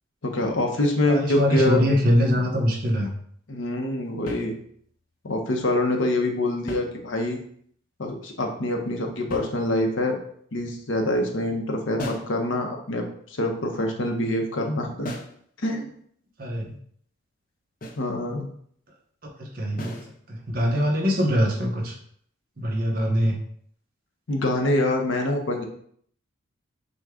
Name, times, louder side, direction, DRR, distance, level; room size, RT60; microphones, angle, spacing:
voice 1, 0.2-1.9 3.5-4.5 5.2-7.4 8.0-10.2 10.5-15.1 15.6-15.9 18.0-18.5 24.3-25.6, left 1 dB, 70° left, 2 dB, 0.8 m, -25 dB
voice 2, 1.1-3.1 16.4-16.7 19.4-20.0 20.3-22.0 22.6-23.4, equal, 45° right, 0 dB, 0.9 m, -23 dB
sound 1, 4.3-5.0 6.5-7.5 9.3-10.1 12.0-12.4 15.0-15.4 17.8-18.1 19.8-20.2, equal, 45° left, 0.6 m, -37 dB
6.2 x 2.3 x 3.6 m, 0.63 s
head